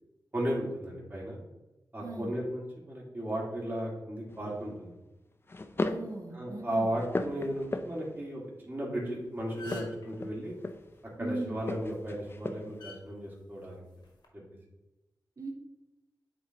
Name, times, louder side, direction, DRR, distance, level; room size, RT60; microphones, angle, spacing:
voice 1, 0.3-1.4 1.9-4.9 6.3-10.6 11.2-13.8, right 1 dB, 30° right, -4 dB, 2.0 m, -35 dB
voice 2, 2.0-2.3 5.8-7.0 11.2-11.6 15.4-15.5, right 2 dB, 55° right, 2 dB, 1.0 m, -38 dB
sound 1, 4.3-4.6 5.5-6.1 6.6-8.2 9.5-11.0 11.6-12.8, left 2 dB, 30° left, 0.5 m, -37 dB
sound 2, 9.0-9.2 9.4-10.1 11.7-11.9 12.8-13.0 14.0-14.3, left 2 dB, 90° left, 1.3 m, -46 dB
8.6 x 3.8 x 2.9 m, 1.0 s
wide cardioid pair, 70°, 7 cm